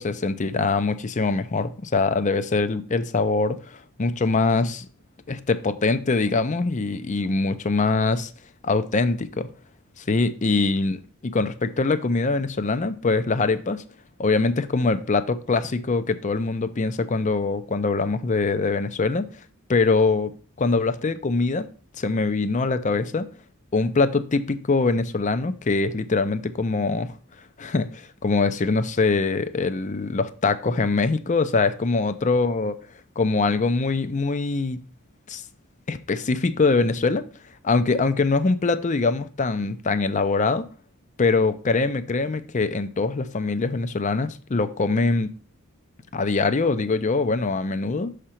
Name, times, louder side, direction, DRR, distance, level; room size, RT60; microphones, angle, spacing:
voice 1, 0.0-4.9 5.3-8.3 8.6-9.5 10.0-13.8 14.2-19.3 19.7-20.3 20.6-21.7 22.0-23.3 23.7-27.1 27.6-32.7 33.2-34.8 35.3-35.4 35.9-37.2 37.6-40.7 41.2-45.3 46.1-48.1, left 3 dB, 35° left, 0.5 m, -23 dB
6.6 x 5.0 x 4.3 m
head